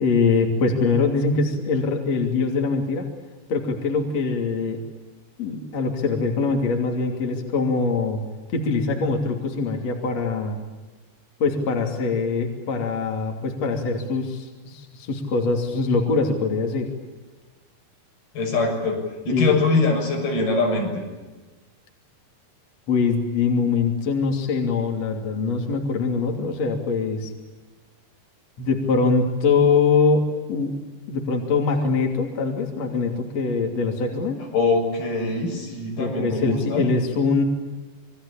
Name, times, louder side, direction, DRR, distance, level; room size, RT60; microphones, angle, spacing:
voice 1, 0.0-3.1 3.5-4.8 5.4-8.2 8.5-10.6 11.4-16.9 19.3-19.6 22.9-27.3 28.6-30.7 31.1-34.4 36.0-37.4, left 4 dB, 45° left, 3 dB, 3.9 m, -23 dB
voice 2, 18.3-19.0 19.3-21.0 34.5-36.8, left 3 dB, 75° left, 2 dB, 8.5 m, -23 dB
28.0 x 23.5 x 8.7 m, 1.2 s
omnidirectional pair, 4.4 m